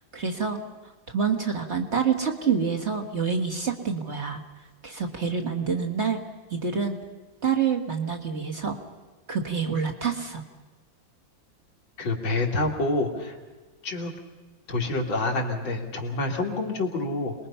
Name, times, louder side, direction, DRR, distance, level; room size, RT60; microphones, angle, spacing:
voice 1, 0.1-0.6 1.1-4.4 4.8-6.2 6.5-7.0 7.4-8.8 9.3-10.4, right 6 dB, 35° right, 1 dB, 1.9 m, -27 dB
voice 2, 12.0-13.4 13.8-14.1 14.7-17.3, left 2 dB, 85° left, 1 dB, 3.2 m, -27 dB
27.0 x 20.5 x 5.7 m, 1.3 s
omnidirectional pair, 2.1 m